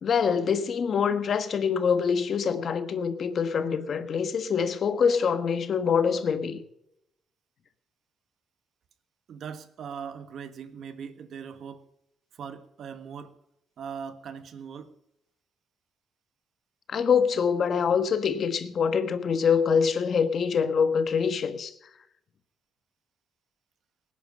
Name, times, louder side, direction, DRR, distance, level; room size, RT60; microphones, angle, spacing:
voice 1, 0.0-6.6 16.9-21.7, left 6 dB, 55° left, 1.3 m, -25 dB
voice 2, 9.3-11.9 12.3-13.4 13.8-14.9, right 7 dB, 65° right, 1.4 m, -40 dB
18.5 x 10.0 x 5.4 m
cardioid pair, 90°, 0 cm